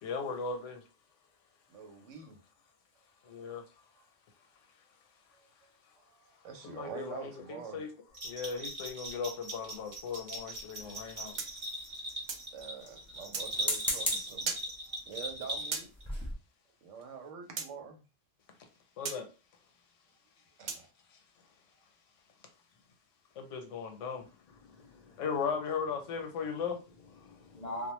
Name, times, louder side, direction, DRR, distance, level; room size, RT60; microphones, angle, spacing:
voice 1, 0.0-0.8 3.2-3.6 6.6-7.9 8.2-11.3 19.0-19.3 23.4-24.2 25.2-26.8, left 5 dB, 90° left, 1.0 m, -37 dB
voice 2, 1.7-2.4 3.5-3.6 5.3-5.7 6.1-7.8 12.5-14.5 14.8-15.9 16.8-18.0 20.6-20.9, right 6 dB, 85° right, 1.0 m, -46 dB
Bell, 8.1-16.0, right 1 dB, 40° right, 0.9 m, -40 dB
sound 1, 10.8-11.6 13.5-14.4 15.1-15.3 15.7-15.8 16.0-16.3, equal, 5° left, 0.7 m, -35 dB
sound 2, 11.4-12.5 13.3-13.5 14.4-14.7 15.7-15.9 17.6-17.7 19.0-19.2 20.7-20.9, right 5 dB, 60° right, 0.5 m, -37 dB
voice 3, 24.2-25.5 26.2-26.6 27.0-27.9, equal, 50° left, 0.5 m, -45 dB
2.3 x 2.1 x 3.0 m
omnidirectional pair, 1.2 m